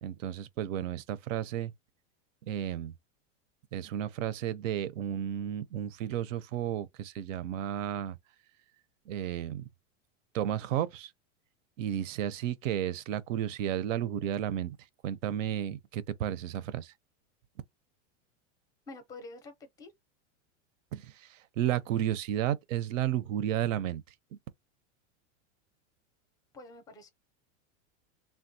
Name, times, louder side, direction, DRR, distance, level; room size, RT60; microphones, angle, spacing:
voice 1, 0.0-1.7 2.4-2.9 3.7-8.2 9.1-9.6 10.3-11.1 11.8-14.8 15.0-16.9 20.9-24.0, right 11 dB, 85° right, 0.7 m, -32 dB
voice 2, 18.9-19.9 26.5-27.1, left 2 dB, 10° left, 0.5 m, -47 dB
3.4 x 2.2 x 2.6 m
supercardioid pair, 155°, 38 cm